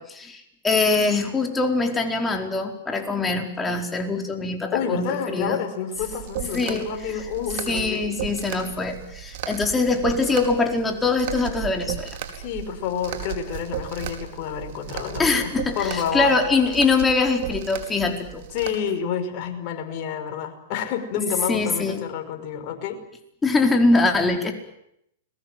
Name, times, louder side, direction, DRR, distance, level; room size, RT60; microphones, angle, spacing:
voice 1, 0.0-5.6 6.5-6.9 7.7-12.1 15.2-18.4 21.5-22.0 23.4-24.5, left 3 dB, 15° left, 3 dB, 4.6 m, -23 dB
voice 2, 4.7-8.1 12.4-16.3 18.5-23.0, left 8 dB, 45° left, 5 dB, 5.4 m, -29 dB
sound 1, 6.0-18.7, right 11 dB, 60° right, 4.6 m, -35 dB
30.0 x 21.5 x 7.7 m, 0.76 s
hypercardioid pair, 115°, 0 cm